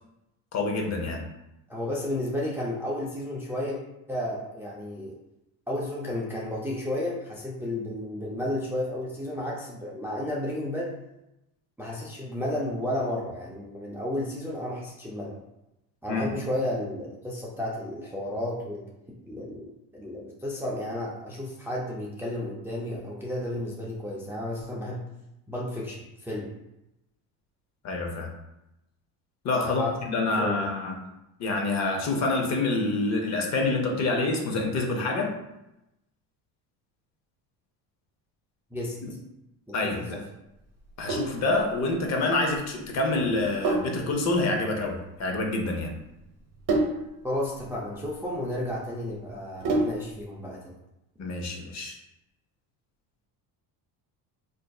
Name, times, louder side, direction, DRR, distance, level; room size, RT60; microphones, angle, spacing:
voice 1, 0.5-1.2 16.1-16.3 27.8-28.3 29.4-30.9 31.4-35.3 39.0-39.1 39.7-40.2 41.0-45.9 51.2-52.0, left 2 dB, 45° left, 2 dB, 0.6 m, -27 dB
voice 2, 1.7-3.8 4.1-5.1 5.7-10.9 11.8-15.4 16.0-18.8 19.3-25.1 25.5-26.5 29.6-29.9 30.3-30.7 38.7-39.2 39.7-40.2 47.2-50.7, left 1 dB, 5° right, -5 dB, 0.4 m, -32 dB
Sink (filling or washing), 40.8-50.2, right 2 dB, 55° right, 0.9 m, -32 dB
4.1 x 2.6 x 2.3 m, 0.90 s
cardioid pair, 130°, 39 cm